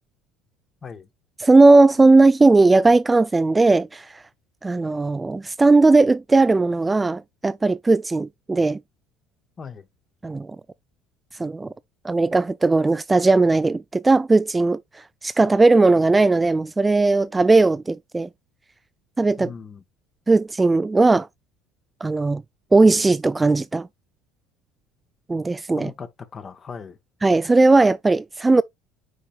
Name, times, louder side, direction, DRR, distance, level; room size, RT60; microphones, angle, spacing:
voice 1, 1.4-4.1 4.6-8.8 10.2-10.5 11.4-11.7 12.0-14.8 15.2-18.3 19.2-19.5 20.3-21.3 22.0-22.4 22.7-23.9 25.3-25.9 27.2-28.6, right 3 dB, 20° right, 0.3 m, -17 dB
voice 2, 19.4-19.8 25.8-27.0, left 6 dB, 35° left, 1.2 m, -38 dB
9.7 x 4.3 x 2.3 m
hypercardioid pair, 75°, 0 cm